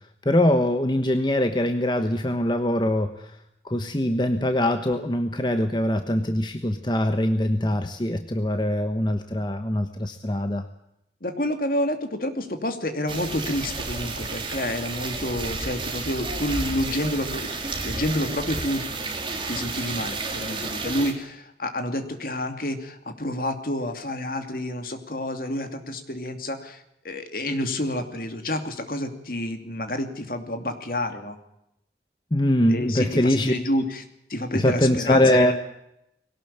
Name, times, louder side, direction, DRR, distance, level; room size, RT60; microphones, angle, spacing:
voice 1, 0.2-3.4 3.6-10.6 32.3-33.5 34.5-35.5, left 1 dB, 25° left, 7 dB, 1.2 m, -23 dB
voice 2, 11.2-18.8 19.5-26.8 27.0-31.4 32.7-34.0 34.3-35.5, left 1 dB, 55° left, 7 dB, 2.7 m, -29 dB
sound 1, 13.1-21.1, right 3 dB, 30° right, 3.2 m, -31 dB
21.5 x 18.0 x 8.7 m, 0.82 s
head